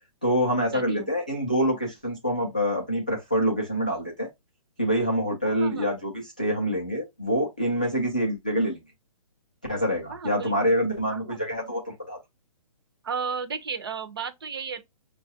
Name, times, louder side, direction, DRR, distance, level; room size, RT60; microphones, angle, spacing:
voice 1, 0.2-4.3 4.8-8.8 9.7-12.2, equal, 15° left, 0.3 m, -26 dB
voice 2, 0.7-1.1 5.4-5.9 10.1-10.7 11.1-11.4 13.0-14.8, right 6 dB, 45° right, 0.5 m, -34 dB
5.2 x 2.2 x 2.7 m
hypercardioid pair, 180°, 18 cm